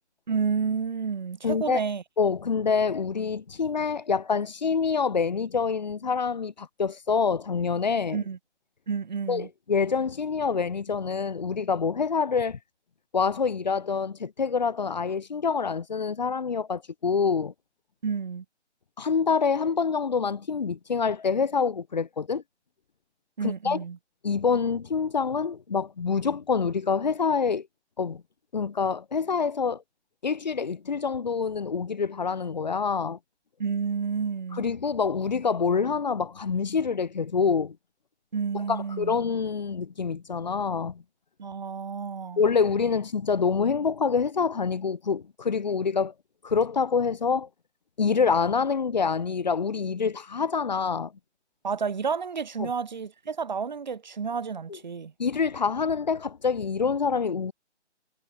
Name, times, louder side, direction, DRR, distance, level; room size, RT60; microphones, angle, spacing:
voice 1, 0.3-2.0 8.1-8.4 8.9-9.5 18.0-18.4 23.4-24.0 33.6-34.7 38.3-39.1 41.4-42.4 51.6-55.1, right 6 dB, 40° right, 5.2 m, -30 dB
voice 2, 1.4-1.8 2.2-8.2 9.3-12.6 13.1-17.5 19.0-22.4 23.4-23.8 24.2-27.7 28.0-28.2 28.5-29.8 30.2-33.2 34.5-37.8 38.5-41.0 42.4-46.1 46.4-47.5 48.0-51.1 52.6-52.7 55.2-57.5, left 5 dB, 40° left, 2.7 m, -26 dB
figure-of-eight pair, 150°, 35 cm